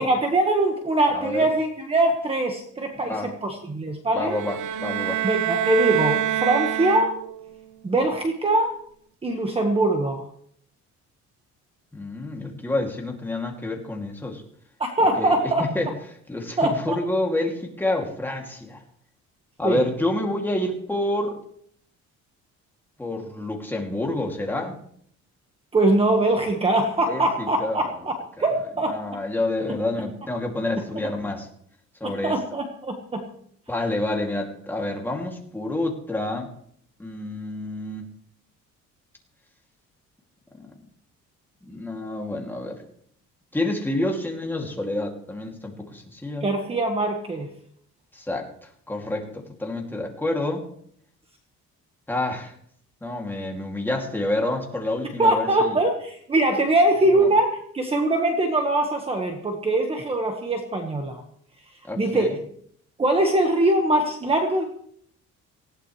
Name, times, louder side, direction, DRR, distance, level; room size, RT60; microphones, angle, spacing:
voice 1, 0.0-4.4 5.2-7.1 7.8-8.7 9.2-10.2 14.8-15.7 16.6-17.0 19.6-19.8 25.7-28.1 28.4-28.9 32.0-33.2 46.4-47.5 55.2-61.2 62.0-62.4 63.0-64.6, right 2 dB, 20° right, 3 dB, 1.5 m, -22 dB
voice 2, 1.1-1.5 3.0-3.3 4.1-5.2 11.9-14.4 15.2-15.9 16.3-18.8 19.6-21.4 23.0-24.8 27.0-27.9 28.4-28.5 28.9-31.5 32.0-32.4 33.7-36.5 37.0-38.1 40.6-40.7 41.6-42.8 43.5-46.5 48.1-48.5 48.9-50.7 52.1-52.5 53.0-55.8 57.2-57.3 61.9-62.4, left 1 dB, 5° left, 1 dB, 2.5 m, -28 dB
sound 1, 4.3-7.5, right 13 dB, 80° right, 1.0 m, -26 dB
19.0 x 16.5 x 3.3 m, 0.64 s
cardioid pair, 165°, 30 cm